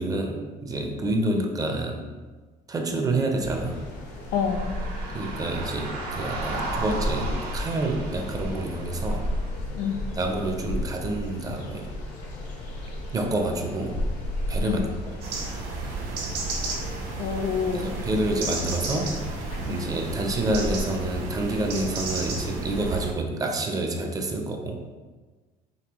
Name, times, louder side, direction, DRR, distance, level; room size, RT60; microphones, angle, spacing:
voice 1, 0.0-2.0 2.7-3.8 5.1-9.3 10.1-11.9 13.1-14.0 14.5-15.2 17.7-19.1 19.7-24.8, right 2 dB, 20° right, 3 dB, 0.4 m, -28 dB
sound 1, 3.4-20.8, left 1 dB, 90° left, 1.1 m, -34 dB
voice 2, 4.3-4.7 9.8-10.0 14.6-14.8 17.2-17.9 19.7-19.9, left 6 dB, 70° left, 6 dB, 0.5 m, -27 dB
sound 2, 4.3-9.5, right 3 dB, 80° right, 1.2 m, -36 dB
sound 3, 15.2-23.1, right 3 dB, 60° right, 1.2 m, -33 dB
5.1 x 3.0 x 3.0 m, 1.3 s
cardioid pair, 155°, 17 cm